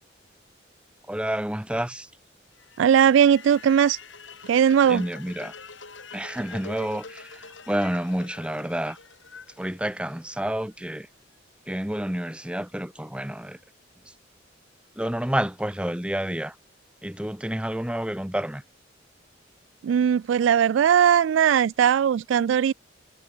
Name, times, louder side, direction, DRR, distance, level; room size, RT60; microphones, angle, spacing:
voice 1, 1.1-2.1 4.9-5.5 6.1-9.0 9.6-11.1 11.7-13.6 14.1-14.2 15.0-16.6 17.0-18.6 20.3-20.4, right 1 dB, 5° right, 0.8 m, -29 dB
sound 1, 2.5-10.6, left 4 dB, 75° left, 4.9 m, -45 dB
voice 2, 2.8-4.0 4.5-5.0 19.8-22.7, right 8 dB, 75° right, 0.3 m, -19 dB
head